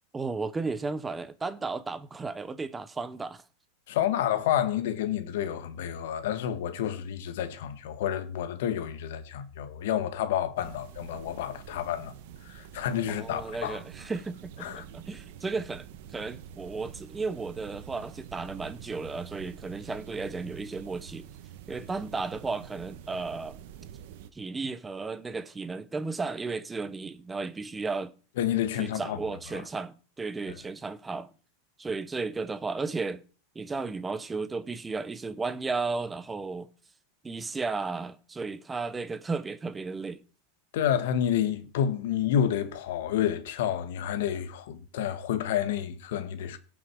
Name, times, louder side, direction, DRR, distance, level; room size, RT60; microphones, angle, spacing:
voice 1, 0.1-3.4 13.1-15.9 16.1-21.3 21.7-23.6 24.3-28.1 28.8-31.3 31.8-33.2 33.5-36.7 37.2-40.2, right 4 dB, 10° right, 0.6 m, -34 dB
voice 2, 3.9-12.1 12.4-13.8 14.6-14.8 28.4-29.2 29.5-29.6 40.7-46.6, left 10 dB, 65° left, 1.7 m, -29 dB
sound 1, 10.6-24.3, right 9 dB, 55° right, 1.2 m, -47 dB
17.5 x 6.2 x 4.7 m
supercardioid pair, 170°, 0 cm